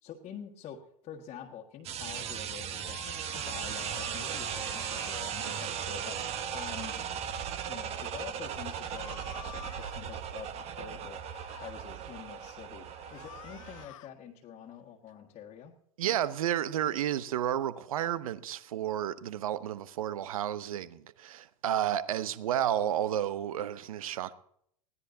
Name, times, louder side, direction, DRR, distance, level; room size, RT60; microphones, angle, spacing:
voice 1, 0.0-7.1 7.7-11.2 11.5-15.8, left 9 dB, 30° left, 1.6 m, -47 dB
sound 1, 1.8-13.9, right 8 dB, 35° right, 1.2 m, -37 dB
sound 2, 2.6-5.7 8.8-10.0 11.1-11.7 12.9-14.1, left 14 dB, 60° left, 0.8 m, -49 dB
voice 2, 16.0-24.3, right 11 dB, 65° right, 0.8 m, -31 dB
20.5 x 16.0 x 2.7 m
figure-of-eight pair, 90°, 19 cm